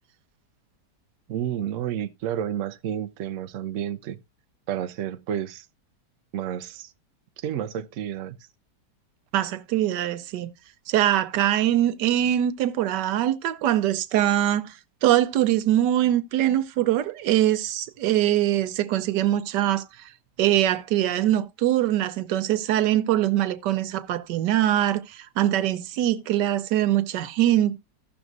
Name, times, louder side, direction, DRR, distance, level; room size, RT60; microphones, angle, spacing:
voice 1, 1.3-4.2 4.7-5.7 6.3-6.9 7.4-8.4, right 10 dB, 60° right, 0.8 m, -30 dB
voice 2, 9.3-10.5 10.9-20.1 20.4-27.8, right 12 dB, 85° right, 1.3 m, -23 dB
16.0 x 6.1 x 2.6 m
omnidirectional pair, 1.8 m